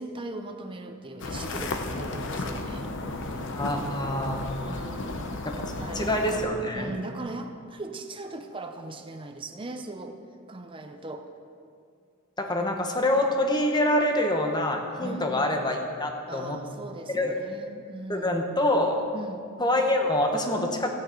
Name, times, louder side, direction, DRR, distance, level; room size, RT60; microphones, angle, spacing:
voice 1, 0.0-2.9 3.2-3.5 4.7-5.4 5.7-6.2 6.7-10.2 10.5-11.3 15.0-15.4 16.3-18.3 19.1-19.5, right 2 dB, 25° right, 5 dB, 0.6 m, -39 dB
sound 1, 1.2-6.5, left 2 dB, 60° left, 0.8 m, -33 dB
voice 2, 3.5-4.5 5.4-6.9 12.4-16.6 17.1-17.3 18.1-19.0 19.6-21.0, left 1 dB, 20° left, 3 dB, 1.0 m, -26 dB
14.5 x 9.3 x 4.5 m, 2.4 s
head